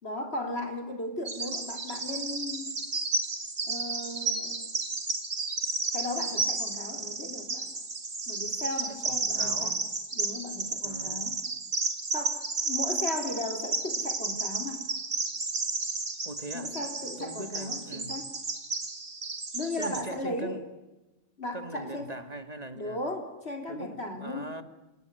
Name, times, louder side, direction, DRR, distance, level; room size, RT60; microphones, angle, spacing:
voice 1, 0.0-2.7 3.6-4.6 5.9-7.7 8.3-9.8 10.1-11.4 12.1-14.8 16.5-18.3 19.5-20.6 21.4-22.1 22.7-24.5, left 1 dB, 60° left, 5 dB, 3.7 m, -36 dB
Bird vocalization bird call bird song, 1.3-20.0, right 3 dB, 80° right, 3.1 m, -32 dB
voice 2, 8.9-9.8 10.8-11.3 16.3-16.7 17.2-18.1 19.8-20.6 21.5-23.0 23.7-24.6, right 2 dB, 35° right, 10 dB, 2.2 m, -41 dB
29.0 x 19.0 x 9.5 m, 1.1 s
omnidirectional pair, 1.2 m